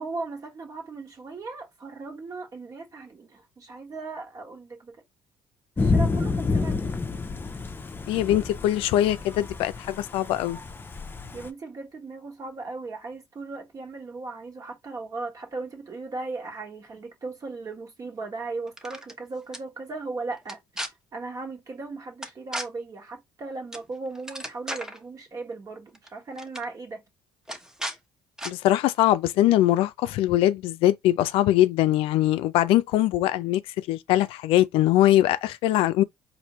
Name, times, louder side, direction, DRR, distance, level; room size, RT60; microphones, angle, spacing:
voice 1, 0.0-5.0 5.8-6.9 11.3-20.6 21.1-27.0, right 3 dB, 40° right, 1.4 m, -37 dB
Thunder / Rain, 5.8-11.5, left 3 dB, 20° left, 0.6 m, -29 dB
voice 2, 8.1-10.6 28.4-36.0, left 14 dB, 80° left, 0.4 m, -22 dB
sound 1, 18.7-19.1 19.5-19.6 20.4-20.9 22.2-22.7 23.7-23.9 24.1-25.0 25.9-26.1 26.4-26.6 27.5-28.0 28.4-28.5, equal, 5° right, 0.8 m, -34 dB
4.4 x 2.7 x 3.0 m
supercardioid pair, 85°, 9 cm